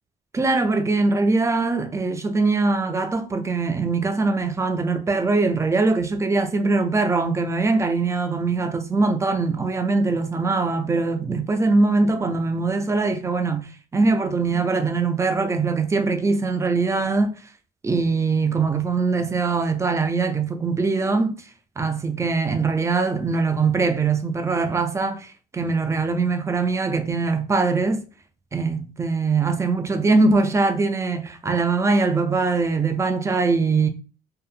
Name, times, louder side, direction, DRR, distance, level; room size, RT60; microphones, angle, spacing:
voice 1, 0.3-13.7 13.9-17.3 17.8-21.3 21.8-28.0 28.5-33.9, right 3 dB, 15° right, 0.3 m, -22 dB
2.7 x 2.0 x 2.4 m
cardioid pair, 110°, 17 cm